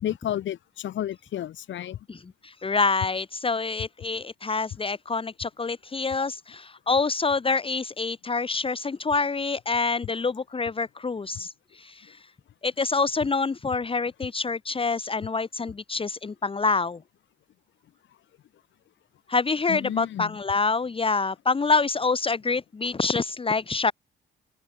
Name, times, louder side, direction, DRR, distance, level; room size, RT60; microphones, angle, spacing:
voice 1, 0.0-2.0 19.7-20.4, left 11 dB, 70° left, 2.6 m, -31 dB
voice 2, 2.1-11.5 11.8-12.1 12.6-17.0 19.3-23.9, left 4 dB, 25° left, 1.4 m, -26 dB
open air
cardioid pair, 90°, 20 cm